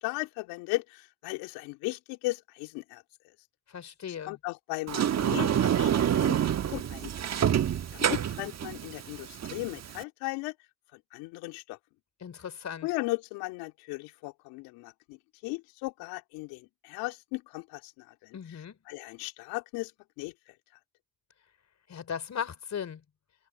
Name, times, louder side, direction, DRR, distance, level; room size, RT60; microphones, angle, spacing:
voice 1, 0.0-3.0 4.3-7.3 7.9-10.5 10.9-11.8 12.8-15.2 15.4-18.4 18.9-19.9 20.2-20.3, left 22 dB, 75° left, 2.6 m, -36 dB
voice 2, 3.7-4.4 12.2-12.9 18.3-18.8 21.9-23.0, left 8 dB, 45° left, 4.3 m, -37 dB
Sliding door, 4.9-10.0, right 9 dB, 45° right, 1.4 m, -27 dB
hypercardioid pair, 55°, 36 cm